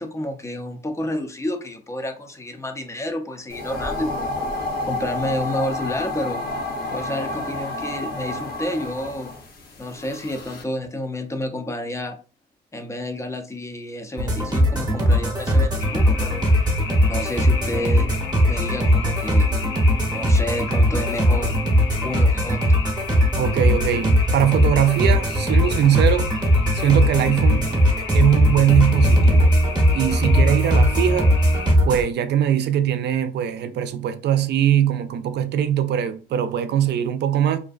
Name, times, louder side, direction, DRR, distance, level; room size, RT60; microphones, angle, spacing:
voice 1, 0.0-6.5 6.9-9.3 9.8-12.1 12.7-16.4 17.1-18.2 18.5-19.6 20.1-21.6 22.0-22.8, left 1 dB, 15° left, 0.5 m, -30 dB
sound 1, 3.5-10.6, left 2 dB, 50° left, 0.8 m, -30 dB
sound 2, 14.2-32.0, equal, 20° right, 0.8 m, -19 dB
sound 3, 15.8-31.7, left 5 dB, 90° left, 0.5 m, -34 dB
voice 2, 23.4-26.3 26.7-27.7 28.1-29.5 29.9-31.3 31.9-37.6, right 10 dB, 60° right, 0.4 m, -21 dB
2.5 x 2.1 x 2.4 m
cardioid pair, 90°, 20 cm